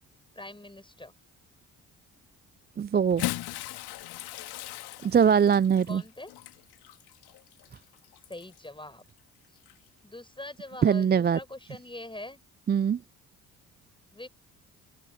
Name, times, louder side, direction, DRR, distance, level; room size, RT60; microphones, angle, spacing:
voice 1, 0.3-1.1 5.9-6.3 8.3-9.0 9.5-9.6 10.0-12.4 14.1-14.3, left 1 dB, 10° left, 6.6 m, -43 dB
voice 2, 2.8-3.3 5.0-6.0 10.8-11.4 12.7-13.0, right 7 dB, 25° right, 0.5 m, -22 dB
Bathtub (filling or washing) / Splash splatter, 3.0-8.7 9.6-9.7 11.2-11.3, left 17 dB, 65° left, 2.0 m, -39 dB
open air
hypercardioid pair, 45°, 41 cm